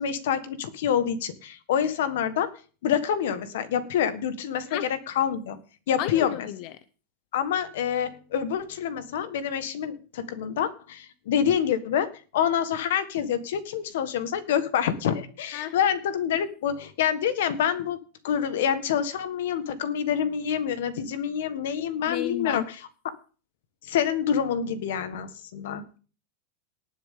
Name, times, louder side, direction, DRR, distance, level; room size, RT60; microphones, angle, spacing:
voice 1, 0.0-2.5 2.8-5.6 5.9-6.5 7.3-18.0 18.2-22.8 23.8-25.8, left 8 dB, 75° left, 12 dB, 1.6 m, -27 dB
voice 2, 6.0-6.7 15.5-15.7 22.1-22.6, left 13 dB, 45° left, 13 dB, 0.7 m, -32 dB
19.0 x 7.1 x 3.8 m, 0.37 s
supercardioid pair, 155°, 0 cm